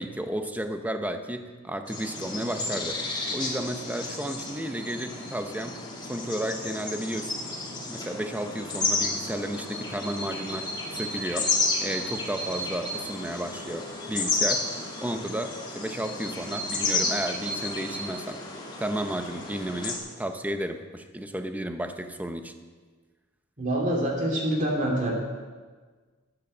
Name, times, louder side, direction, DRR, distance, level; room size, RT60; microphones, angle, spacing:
voice 1, 0.0-3.0 3.3-5.8 6.1-7.3 7.9-11.5 11.8-14.7 15.0-18.5 18.8-22.5, right 1 dB, 10° right, 7 dB, 0.8 m, -33 dB
sound 1, 1.9-20.0, left 3 dB, 25° left, 2.5 m, -32 dB
voice 2, 23.6-25.1, right 1 dB, 40° right, -1 dB, 2.9 m, -26 dB
12.0 x 9.7 x 6.7 m, 1.4 s
head